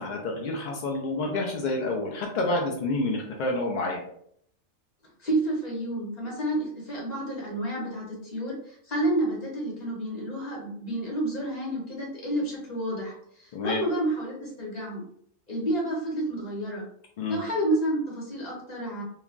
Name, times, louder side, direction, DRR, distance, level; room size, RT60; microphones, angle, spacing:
voice 1, 0.0-4.0 13.5-13.8 17.2-17.4, left 2 dB, 65° left, -1 dB, 0.4 m, -28 dB
voice 2, 5.2-13.1 13.4-15.0 15.5-16.8 17.3-19.0, right 1 dB, 35° left, -3 dB, 0.9 m, -30 dB
3.2 x 2.2 x 2.4 m, 0.67 s
omnidirectional pair, 1.3 m